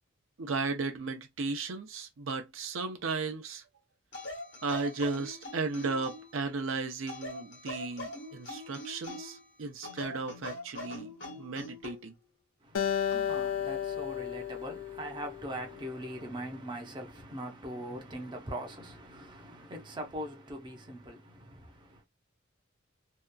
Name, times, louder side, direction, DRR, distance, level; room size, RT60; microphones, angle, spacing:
voice 1, 0.4-3.6 4.6-12.1, right 4 dB, 75° right, 0.6 m, -35 dB
sound 1, 4.1-6.4 7.1-9.4 9.8-12.0 13.1-13.4, left 2 dB, 65° left, 1.1 m, -43 dB
voice 2, 12.6-22.0, right 1 dB, 25° right, 0.7 m, -41 dB
Acoustic guitar, 12.7-16.1, left 9 dB, 85° left, 0.5 m, -34 dB
2.7 x 2.4 x 2.3 m
head